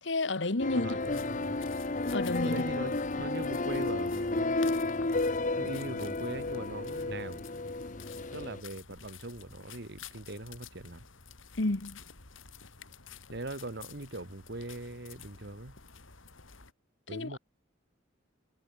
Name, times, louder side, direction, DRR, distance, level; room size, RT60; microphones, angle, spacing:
voice 1, 0.0-1.0 2.1-2.6 11.6-12.0 17.1-17.4, left 2 dB, 65° left, 1.5 m, -31 dB
sound 1, 0.6-8.6, left 2 dB, 40° left, 1.1 m, -32 dB
voice 2, 0.7-1.6 2.4-4.6 5.6-7.4 8.3-11.0 13.3-15.8 17.1-17.4, right 2 dB, 60° right, 1.9 m, -41 dB
sound 2, 1.0-16.7, left 6 dB, 85° left, 3.1 m, -51 dB
head